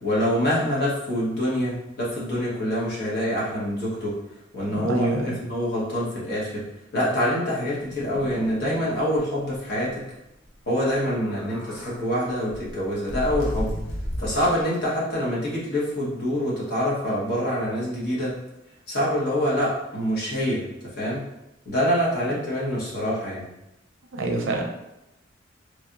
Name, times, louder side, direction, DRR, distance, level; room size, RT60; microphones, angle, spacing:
voice 1, 0.0-4.1 4.5-6.6 6.9-10.0 10.7-13.7 14.2-18.3 18.9-20.7 21.0-21.2 21.6-23.5, equal, 50° left, -6 dB, 1.1 m, -25 dB
voice 2, 4.6-5.4 24.1-24.7, right 2 dB, 70° right, 2 dB, 0.5 m, -26 dB
sound 1, 7.8-8.8 9.1-9.2 9.5-9.7 10.9-12.0 12.5-14.8, equal, 85° left, 0.7 m, -33 dB
3.2 x 2.7 x 2.4 m, 0.89 s
head